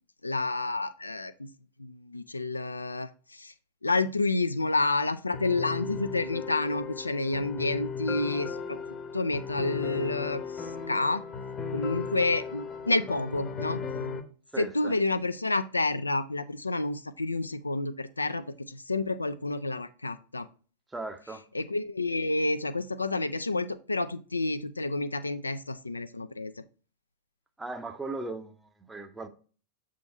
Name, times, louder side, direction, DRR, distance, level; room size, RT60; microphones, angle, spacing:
voice 1, 0.2-1.5 1.8-3.5 3.8-8.8 9.1-11.2 11.7-13.8 14.6-20.5 21.5-26.5, left 2 dB, 80° left, 0.3 m, -29 dB
sound 1, 5.3-14.2, left 5 dB, 25° left, 0.8 m, -36 dB
voice 2, 14.5-15.0 20.9-21.5 27.6-29.3, right 3 dB, 10° right, 0.7 m, -38 dB
6.8 x 3.7 x 4.2 m
figure-of-eight pair, 90°, 0 cm